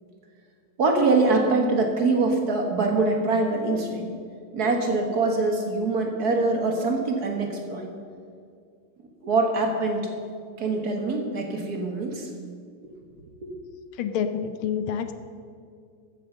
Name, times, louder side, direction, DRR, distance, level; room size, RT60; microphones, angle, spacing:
voice 1, 0.8-4.1 4.5-7.9 9.2-10.1 10.6-12.3 13.4-13.5, right 3 dB, 50° right, 3 dB, 1.7 m, -24 dB
voice 2, 14.0-15.1, left 8 dB, 75° left, 8 dB, 1.6 m, -27 dB
14.0 x 7.4 x 6.7 m, 2.3 s
omnidirectional pair, 2.4 m